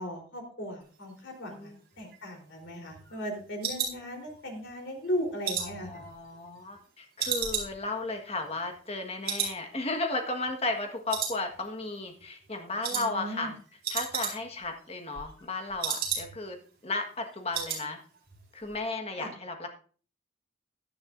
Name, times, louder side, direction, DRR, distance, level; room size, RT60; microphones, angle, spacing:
voice 1, 0.0-1.7 2.0-6.0 12.9-13.5 19.2-19.3, equal, 65° left, 2 dB, 3.8 m, -37 dB
sound 1, 1.9-4.7 5.0-6.8 7.2-9.0 9.2-9.6 9.9-10.0 10.4-10.8 11.1-11.9 12.2-12.4 12.8-13.1 13.4-13.5 13.7-14.7 15.0-16.6 16.9-17.0 17.2-17.9 18.1-18.4 18.7-18.8, right 7 dB, 50° right, 4.6 m, -34 dB
voice 2, 5.6-13.6 13.9-16.6 16.8-18.0 18.5-19.7, left 2 dB, 30° left, 4 dB, 1.5 m, -34 dB
16.5 x 11.0 x 2.6 m, 0.41 s
head